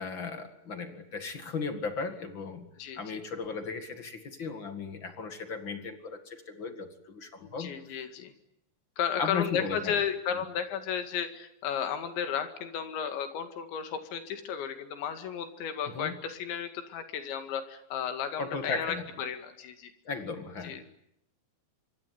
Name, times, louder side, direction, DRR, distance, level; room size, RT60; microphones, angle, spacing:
voice 1, 0.0-2.7 3.0-7.7 9.2-10.0 15.9-16.1 18.4-19.0 20.0-20.8, left 4 dB, 45° left, 8 dB, 1.6 m, -36 dB
voice 2, 2.8-3.2 7.4-8.3 9.0-19.9 20.6-20.8, left 8 dB, 75° left, 8 dB, 4.3 m, -34 dB
25.5 x 24.0 x 9.4 m, 0.77 s
omnidirectional pair, 5.3 m